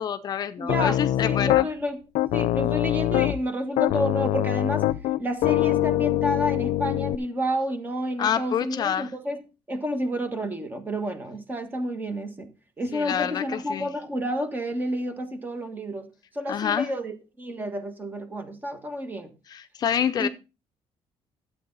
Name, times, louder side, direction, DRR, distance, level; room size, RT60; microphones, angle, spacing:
voice 1, 0.0-1.7 8.2-9.1 12.9-13.9 16.5-16.9 19.5-20.3, left 8 dB, 40° left, 0.6 m, -27 dB
voice 2, 0.6-2.0 2.3-4.8 5.2-9.4 9.7-12.5 12.8-16.1 16.3-19.3 20.2-20.3, equal, 20° right, 1.6 m, -30 dB
Piano, 0.7-1.7 2.1-3.4 3.8-7.2, left 14 dB, 85° left, 0.5 m, -23 dB
12.0 x 8.4 x 4.0 m
cardioid pair, 165°, 10 cm